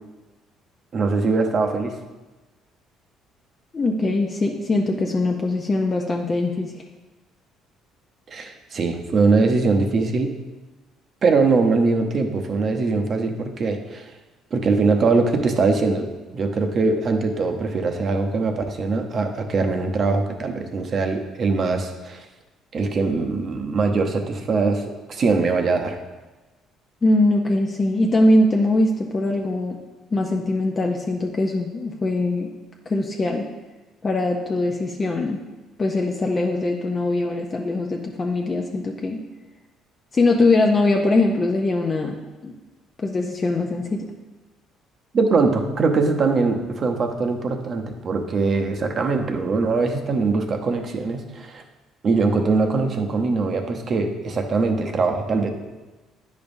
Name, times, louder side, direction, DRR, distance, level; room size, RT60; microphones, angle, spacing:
voice 1, 0.9-1.9 8.3-10.3 11.2-14.1 14.5-16.1 16.3-22.2 22.7-26.0 45.1-51.6 52.0-55.5, right 4 dB, 45° right, 4 dB, 0.8 m, -22 dB
voice 2, 3.7-6.7 27.0-29.8 30.1-32.5 32.9-33.4 34.0-35.4 35.8-39.2 40.1-42.2 42.4-42.5 43.0-44.1, left 2 dB, 30° left, 1 dB, 0.6 m, -21 dB
9.5 x 5.2 x 2.6 m, 1.2 s
cardioid pair, 100°, 0 cm